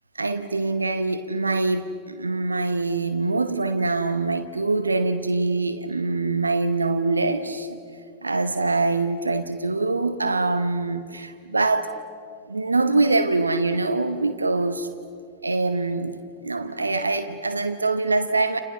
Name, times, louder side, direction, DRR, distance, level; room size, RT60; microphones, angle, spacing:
voice 1, 0.2-7.8 8.2-11.9 12.5-14.9 15.4-16.2 16.4-18.6, right 3 dB, 80° right, 10 dB, 1.0 m, -24 dB
29.5 x 28.0 x 6.2 m, 2.4 s
figure-of-eight pair, 90°, 0 cm